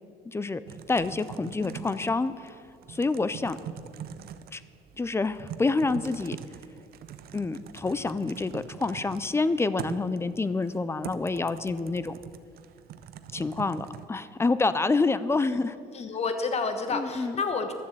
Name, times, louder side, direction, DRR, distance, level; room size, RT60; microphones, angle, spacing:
voice 1, 0.3-0.6 0.9-2.5 2.9-3.6 4.5-4.6 5.0-6.4 7.3-12.2 13.3-15.7 16.9-17.4, left 3 dB, 15° left, 15 dB, 0.5 m, -27 dB
Typing, 0.7-14.1, right 9 dB, 65° right, 0.7 m, -43 dB
voice 2, 1.6-2.2 15.4-15.6 15.9-17.7, left 4 dB, 40° left, 7 dB, 1.3 m, -31 dB
12.0 x 7.2 x 7.7 m, 2.3 s
cardioid pair, 110°, 17 cm